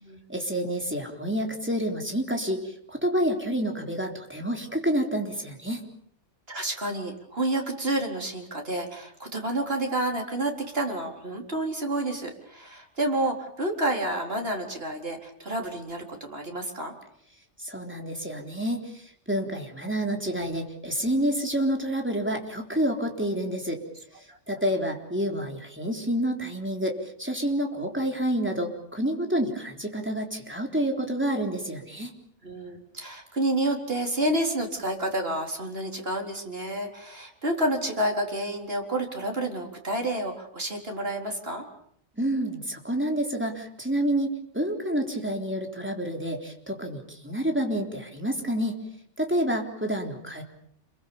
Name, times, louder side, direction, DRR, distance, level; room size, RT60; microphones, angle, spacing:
voice 1, 0.3-2.6 2.9-5.8 17.6-18.8 19.3-23.8 24.5-32.1 42.2-48.8 49.2-50.4, right 1 dB, 10° right, 2 dB, 3.8 m, -28 dB
voice 2, 6.5-16.9 24.3-24.4 32.4-41.6, right 1 dB, 55° right, 2 dB, 4.4 m, -29 dB
28.0 x 22.5 x 7.1 m, 0.67 s
omnidirectional pair, 1.2 m